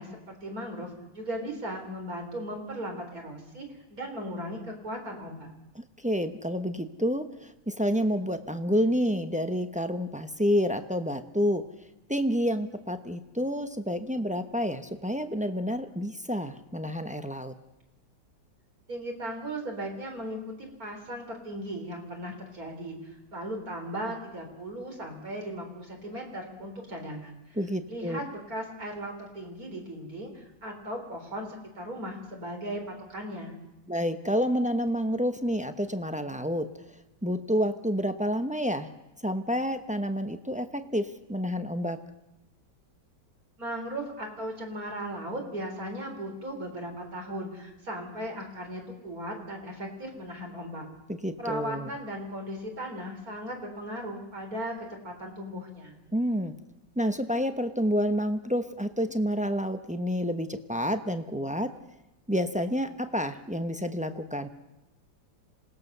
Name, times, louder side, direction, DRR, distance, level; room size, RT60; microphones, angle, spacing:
voice 1, 0.0-5.5 18.9-27.6 27.9-33.6 43.6-50.8 51.4-56.0, equal, 50° right, 2 dB, 4.5 m, -37 dB
voice 2, 5.8-11.6 12.1-17.5 27.6-28.2 33.9-36.7 37.2-38.9 39.2-42.0 51.1-51.9 56.1-56.5 57.0-61.7 62.3-64.5, equal, 10° right, 8 dB, 0.4 m, -29 dB
26.5 x 19.0 x 6.8 m, 0.95 s
omnidirectional pair, 2.0 m